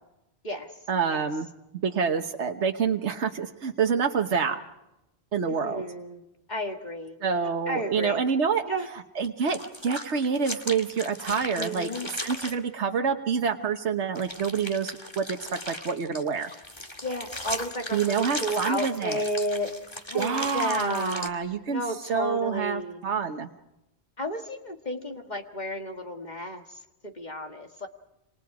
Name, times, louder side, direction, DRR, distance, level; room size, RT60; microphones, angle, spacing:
voice 1, 0.9-1.5 1.8-4.6 5.3-5.8 7.2-8.6 9.1-16.5 17.9-19.2 20.1-23.5, right 6 dB, 80° right, 4 dB, 1.5 m, -27 dB
voice 2, 5.5-6.2 6.5-7.2 7.7-8.2 8.6-8.9 11.5-12.1 17.0-19.7 20.1-21.3 21.7-23.0 24.2-27.9, equal, 40° left, 4 dB, 2.0 m, -32 dB
sound 1, 9.2-12.6 14.2-21.3, left 1 dB, 25° left, 2.3 m, -37 dB
28.5 x 27.0 x 4.9 m, 0.90 s
omnidirectional pair, 1.1 m